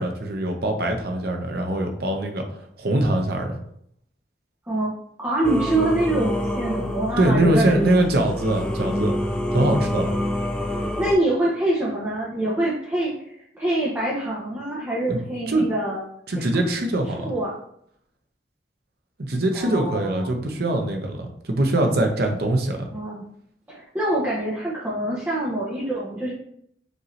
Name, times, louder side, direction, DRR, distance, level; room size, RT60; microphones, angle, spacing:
voice 1, 0.0-2.4 2.8-3.6 7.2-9.1 9.5-10.1 15.1-15.2 15.5-15.6 16.3-17.3 19.2-22.9, right 1 dB, 60° right, 4 dB, 0.7 m, -22 dB
voice 2, 5.2-7.9 10.7-16.0 16.4-16.5 17.2-17.5 19.5-20.3 22.9-23.2 23.7-26.3, right 1 dB, 10° right, -7 dB, 0.7 m, -25 dB
Singing / Musical instrument, 5.4-11.1, left 1 dB, 5° left, 0.3 m, -27 dB
5.2 x 2.7 x 3.1 m, 0.68 s
head